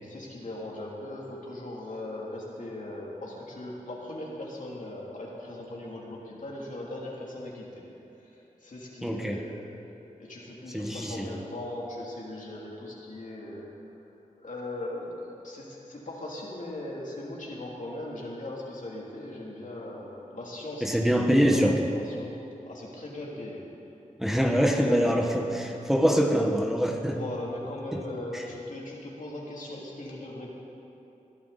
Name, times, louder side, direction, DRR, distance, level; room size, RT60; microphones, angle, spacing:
voice 1, 0.0-7.8 8.2-9.7 10.2-13.7 14.4-15.1 15.4-22.3 22.7-23.6 24.4-25.6 27.0-30.5, left 1 dB, 65° left, -4 dB, 3.1 m, -39 dB
voice 2, 9.0-9.4 10.7-11.4 20.8-21.9 24.2-27.2 27.9-28.0, equal, 5° right, 2 dB, 1.3 m, -24 dB
21.0 x 11.5 x 4.2 m, 2.9 s
cardioid pair, 50°, 14 cm